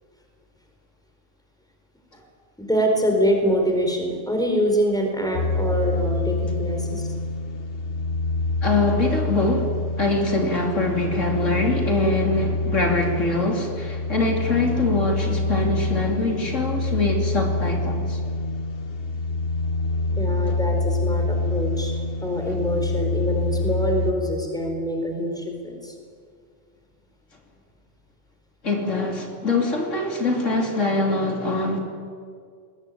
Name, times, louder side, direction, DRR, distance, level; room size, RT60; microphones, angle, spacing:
voice 1, 2.6-7.1 20.2-21.9 22.2-25.9, equal, 5° left, 2 dB, 4.3 m, -25 dB
sound 1, 5.3-24.1, left 2 dB, 50° left, 1.5 m, -26 dB
voice 2, 8.6-18.2 28.6-31.8, left 2 dB, 75° left, 2 dB, 3.5 m, -23 dB
21.0 x 20.0 x 9.4 m, 2.1 s
omnidirectional pair, 1.3 m